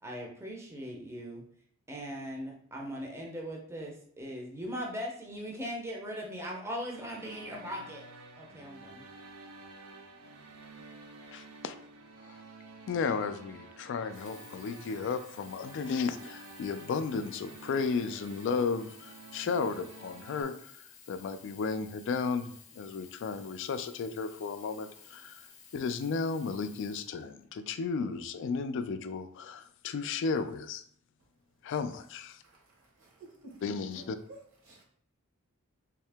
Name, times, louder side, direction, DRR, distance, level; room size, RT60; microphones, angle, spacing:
voice 1, 0.0-1.4 1.9-8.0 8.3-9.0, equal, 10° right, -1 dB, 0.6 m, -39 dB
sound 1, 6.7-20.4, right 3 dB, 80° right, 0.6 m, -51 dB
voice 2, 11.3-11.7 12.2-12.4 12.9-25.4 25.7-30.8 31.6-32.4 33.6-34.2, left 5 dB, 60° left, 10 dB, 0.3 m, -34 dB
Sink (filling or washing), 14.0-27.8 28.5-28.6, left 6 dB, 30° left, 0.7 m, -55 dB
voice 3, 33.0-33.6 33.9-34.0 34.6-34.8, right 2 dB, 65° right, -2 dB, 1.2 m, -52 dB
3.5 x 2.7 x 3.4 m, 0.62 s
head